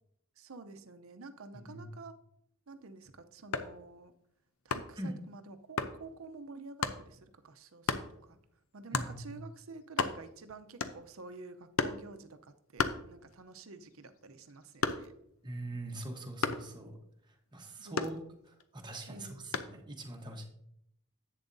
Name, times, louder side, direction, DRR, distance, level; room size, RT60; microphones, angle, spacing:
voice 1, 0.4-2.1 2.7-4.1 4.6-8.4 8.7-15.1 17.8-18.1 19.1-19.6, right 3 dB, 80° right, 9 dB, 0.7 m, -50 dB
voice 2, 1.5-1.9 5.0-5.1 8.9-9.3 15.4-17.0 17.5-18.2 18.5-20.4, right 1 dB, 20° right, 2 dB, 1.1 m, -42 dB
sound 1, 3.4-3.8 4.7-5.0 5.8-6.0 6.8-7.0 7.9-8.1 8.9-9.2 9.6-9.7 9.9-10.4 10.8-11.2 11.8-12.1 12.8-13.5 13.9-15.3 16.4-16.7 18.0-18.6 19.5-19.8, left 5 dB, 85° left, 0.6 m, -34 dB
10.5 x 8.3 x 2.7 m, 0.74 s
head